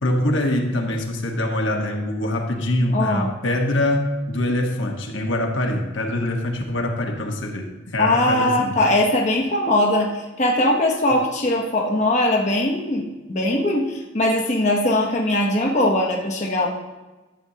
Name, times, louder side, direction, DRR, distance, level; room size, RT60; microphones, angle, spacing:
voice 1, 0.0-8.8, left 1 dB, 75° left, 2 dB, 1.2 m, -24 dB
voice 2, 2.9-3.3 8.0-16.7, left 1 dB, 35° left, -1 dB, 0.9 m, -20 dB
11.5 x 7.8 x 2.8 m, 1.1 s
head